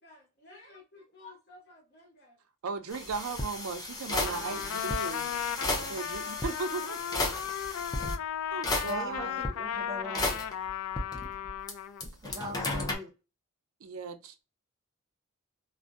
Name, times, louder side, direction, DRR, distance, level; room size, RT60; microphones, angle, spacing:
voice 1, 0.0-2.4, left 3 dB, 50° left, 1.2 m, -53 dB
voice 2, 2.6-5.3 5.8-7.2 8.4-9.5 12.2-12.3 13.8-14.4, right 4 dB, 85° right, 0.5 m, -37 dB
sound 1, 2.9-8.1 8.6-9.5 10.1-11.7 12.0-13.0, left 2 dB, 20° left, 0.4 m, -34 dB
Trumpet, 4.2-12.1, left 9 dB, 80° left, 0.3 m, -36 dB
voice 3, 8.8-10.4 12.2-13.1, left 1 dB, 15° right, 0.7 m, -40 dB
2.5 x 2.1 x 2.3 m
head